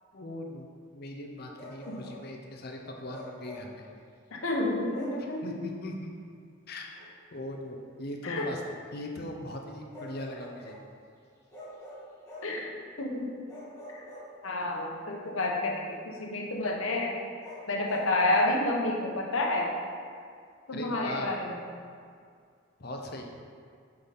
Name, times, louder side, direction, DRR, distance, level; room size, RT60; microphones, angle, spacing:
voice 1, 0.1-0.7 0.9-3.9 5.4-6.1 6.7-6.9 7.3-8.6 8.9-10.7 20.7-21.3 22.8-23.3, left 1 dB, 50° left, 1 dB, 0.8 m, -39 dB
Bark, 1.5-2.3 3.1-3.8 4.9-5.3 6.9-7.1 9.9-10.9 11.5-12.6 13.5-14.7 17.4-18.1, equal, 15° left, 1.7 m, -46 dB
voice 2, 4.3-5.6 8.2-8.5 12.4-12.7 13.0-13.4 13.9-14.0 14.4-17.2 17.7-19.7 20.7-21.6, left 2 dB, 75° left, -1 dB, 1.0 m, -29 dB
8.6 x 4.0 x 4.2 m, 2.2 s
head